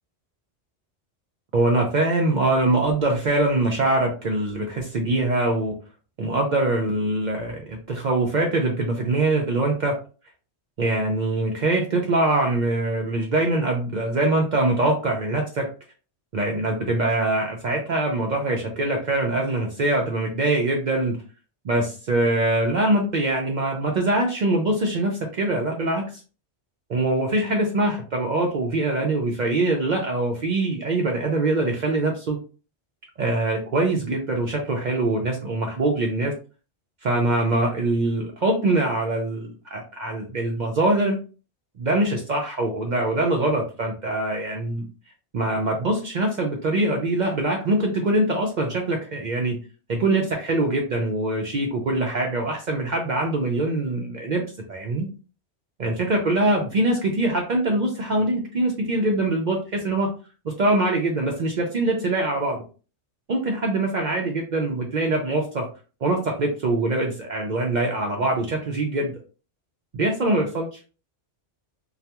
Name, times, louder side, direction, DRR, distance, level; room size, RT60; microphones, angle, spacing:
voice 1, 1.5-5.7 6.2-10.0 10.8-15.7 16.3-21.2 21.6-26.0 26.9-32.4 33.2-36.3 37.0-41.2 41.8-44.9 45.3-49.6 49.9-54.4 54.7-55.1 55.8-60.1 60.4-62.6 63.3-65.7 66.0-69.1 69.9-70.8, right 2 dB, 60° right, 1 dB, 0.5 m, -23 dB
2.3 x 2.2 x 2.8 m, 0.36 s
omnidirectional pair, 1.2 m